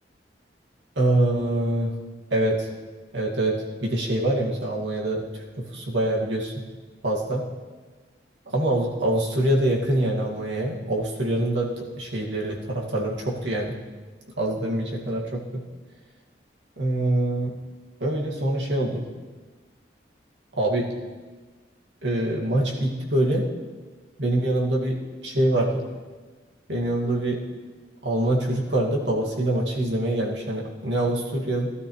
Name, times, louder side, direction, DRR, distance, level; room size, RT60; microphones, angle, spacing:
voice 1, 1.0-1.9 2.3-2.7 3.1-6.5 7.0-7.4 8.5-13.7 14.4-15.6 16.8-17.5 18.0-19.0 20.6-20.9 22.0-23.5 24.2-25.8 26.7-27.4 28.0-31.7, right 1 dB, 85° right, -2 dB, 2.3 m, -25 dB
16.5 x 12.5 x 3.3 m, 1.4 s
head